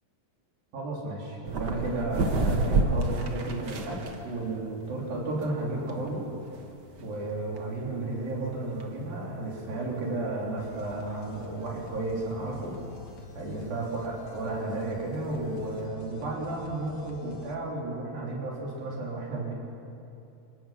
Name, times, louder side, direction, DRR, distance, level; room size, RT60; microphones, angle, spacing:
voice 1, 0.7-6.2 7.0-12.7 13.4-19.5, right 2 dB, 85° right, -3 dB, 5.6 m, -33 dB
sound 1, 1.5-15.9, right 3 dB, 55° right, 1.1 m, -34 dB
sound 2, 10.6-17.5, left 3 dB, 60° left, 2.6 m, -48 dB
27.0 x 17.0 x 5.9 m, 2.7 s
omnidirectional pair, 4.0 m